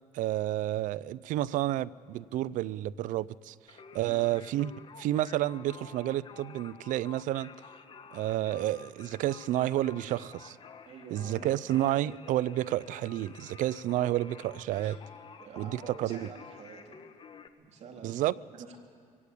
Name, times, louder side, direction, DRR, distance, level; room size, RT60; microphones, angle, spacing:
voice 1, 0.1-3.5 3.9-4.7 5.0-7.5 8.1-10.6 11.1-15.0 15.6-16.3 18.0-18.3, right 14 dB, 70° right, 0.5 m, -30 dB
Singing, 3.7-17.5, left 6 dB, 40° left, 1.4 m, -51 dB
voice 2, 4.0-4.4 10.8-11.5 14.7-15.0 15.4-17.0 17.6-18.8, right 5 dB, 55° right, 3.4 m, -48 dB
23.5 x 17.0 x 8.4 m
cardioid pair, 90°, 14 cm